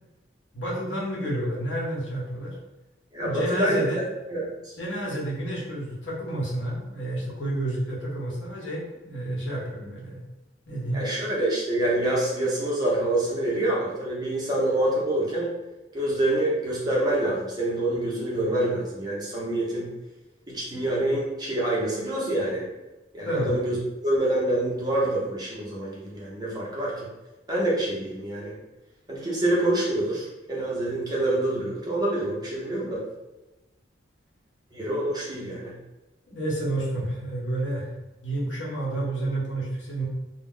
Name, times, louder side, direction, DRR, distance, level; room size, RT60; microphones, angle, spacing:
voice 1, 0.5-2.5 3.2-4.0 4.8-10.2 10.7-11.0 23.2-23.5 36.3-37.9 38.2-40.1, right 1 dB, 80° left, -5 dB, 0.9 m, -30 dB
voice 2, 3.1-4.7 10.9-15.5 15.9-19.9 20.5-22.6 23.1-23.8 24.0-27.1 27.5-28.5 29.1-33.0 34.7-35.7, right 1 dB, 20° right, -5 dB, 0.7 m, -26 dB
2.3 x 2.0 x 3.7 m, 1.0 s
head